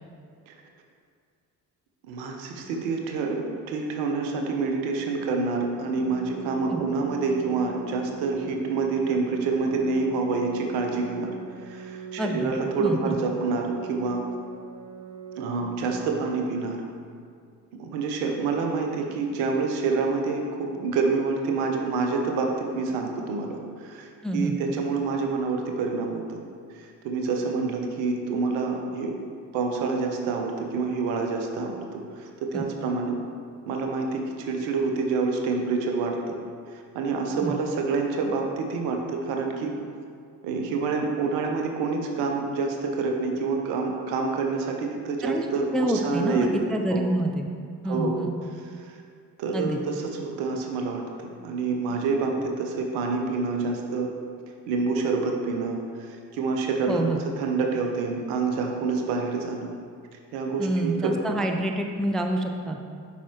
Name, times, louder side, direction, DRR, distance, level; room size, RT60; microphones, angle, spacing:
voice 1, 2.1-11.3 11.6-14.2 15.4-16.8 17.7-26.4 26.7-29.1 29.5-33.1 33.7-36.4 36.7-39.8 40.4-47.0 47.8-48.2 48.8-48.9 49.4-54.1 54.7-57.0 57.4-59.7 60.3-61.4, right 4 dB, 70° right, 2 dB, 1.0 m, -27 dB
Organ, 5.6-16.6, right 4 dB, 40° right, 0.7 m, -40 dB
voice 2, 12.2-12.5 12.8-13.2 24.2-24.6 32.5-32.7 37.4-37.6 45.2-45.5 45.7-47.5 47.8-48.3 49.5-49.8 56.9-57.2 60.6-62.8, right 1 dB, ahead, 3 dB, 0.4 m, -27 dB
8.2 x 5.7 x 3.1 m, 2.2 s
figure-of-eight pair, 45°, 50 cm